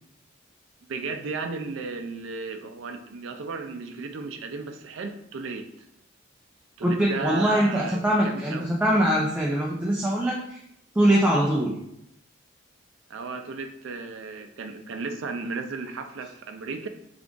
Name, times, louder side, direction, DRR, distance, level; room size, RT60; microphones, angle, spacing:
voice 1, 0.8-5.9 6.8-8.7 13.1-16.9, right 4 dB, 70° right, 7 dB, 0.4 m, -34 dB
voice 2, 6.8-10.6 11.0-11.7, right 1 dB, 10° right, -4 dB, 0.4 m, -22 dB
3.4 x 2.5 x 3.7 m, 0.76 s
head